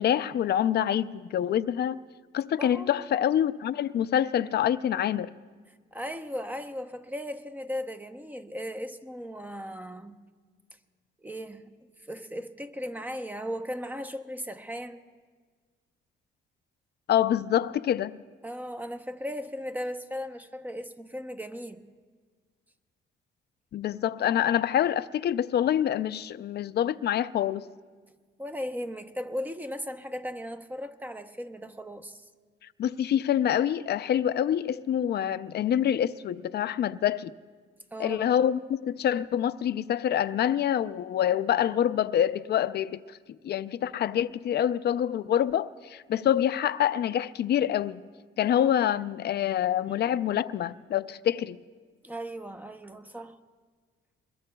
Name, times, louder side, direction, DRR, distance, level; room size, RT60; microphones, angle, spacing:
voice 1, 0.0-2.0 2.3-5.3 17.1-18.2 23.7-27.7 32.8-37.4 38.0-43.2 43.4-48.1 48.4-51.6, left 10 dB, 55° left, 0.5 m, -26 dB
voice 2, 2.6-3.0 5.9-10.2 11.2-11.7 12.0-15.0 18.4-21.8 28.4-32.3 37.9-38.2 48.4-48.5 52.0-53.4, equal, 10° right, 0.8 m, -37 dB
25.5 x 21.5 x 2.3 m
cardioid pair, 90°, 20 cm